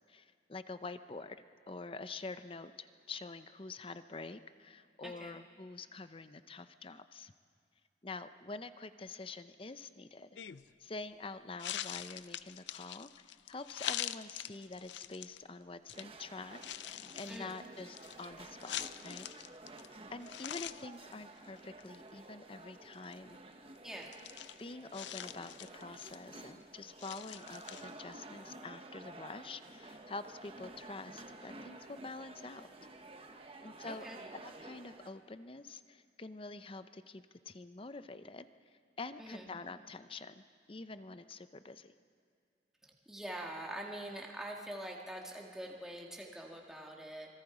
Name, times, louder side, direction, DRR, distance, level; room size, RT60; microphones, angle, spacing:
voice 1, 0.1-1.4 1.7-7.3 8.0-10.3 10.8-16.6 16.9-19.3 20.1-23.4 24.6-32.7 33.6-34.1 34.4-38.5 39.0-41.9, left 3 dB, 30° left, 12 dB, 0.6 m, -46 dB
voice 2, 5.0-5.3 17.3-17.5 23.8-24.1 33.9-34.2 39.2-39.5 42.8-47.3, right 1 dB, 5° right, -1 dB, 1.7 m, -44 dB
sound 1, 10.4-10.7 11.6-15.4 15.9-16.0 16.5-19.9 20.2-20.9 21.1-21.2 21.6-22.0 22.9-23.2 24.0-26.4 27.0-28.1, left 12 dB, 75° left, 0.5 m, -44 dB
sound 2, 15.9-35.1, right 2 dB, 30° right, 1.1 m, -52 dB
26.0 x 20.5 x 5.0 m, 2.2 s
head